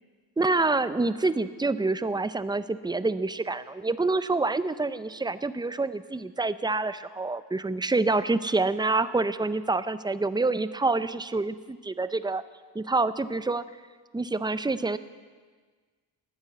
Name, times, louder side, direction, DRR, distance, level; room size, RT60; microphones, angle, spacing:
voice 1, 0.4-12.4 12.7-13.6 14.1-15.0, right 3 dB, 10° right, 14 dB, 0.4 m, -27 dB
15.0 x 9.8 x 8.4 m, 1.5 s
wide cardioid pair, 110°, 47 cm